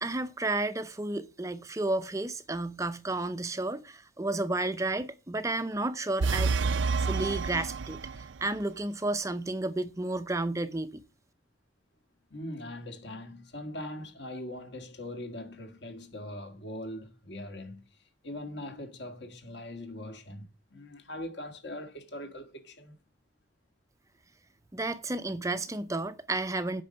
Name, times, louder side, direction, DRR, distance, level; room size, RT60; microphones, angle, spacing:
voice 1, 0.0-6.6 7.0-11.0 24.7-26.8, right 2 dB, 15° right, 0.5 m, -32 dB
sound 1, 6.2-8.5, right 4 dB, 70° right, 0.5 m, -29 dB
voice 2, 12.3-17.8 18.2-22.9, left 1 dB, 60° left, 1.9 m, -41 dB
8.7 x 5.4 x 7.6 m
head